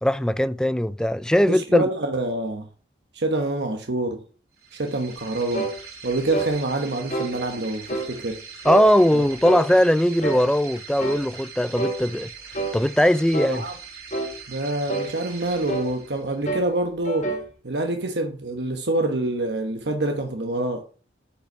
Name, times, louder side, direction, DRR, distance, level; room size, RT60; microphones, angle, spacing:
voice 1, 0.0-1.9 8.7-12.3 12.7-13.6, equal, 5° left, 0.3 m, -20 dB
voice 2, 1.5-2.7 3.1-4.2 4.7-5.7 6.0-8.4 9.1-9.2 13.5-13.7 14.5-17.3 17.6-20.8, right 2 dB, 75° right, 1.1 m, -26 dB
sound 1, 4.5-16.5, right 6 dB, 55° right, 3.1 m, -42 dB
sound 2, 5.5-5.8 6.3-6.6 7.1-7.3 7.9-8.1 8.6-8.9 9.4-9.7 10.2-10.5 11.0-11.2 11.8-12.0 12.5-12.8 13.3-13.6 14.1-14.4 14.9-15.1 15.7-15.9 16.5-16.7 17.0-17.5, right 2 dB, 40° left, 1.9 m, -28 dB
9.0 x 5.4 x 5.4 m
head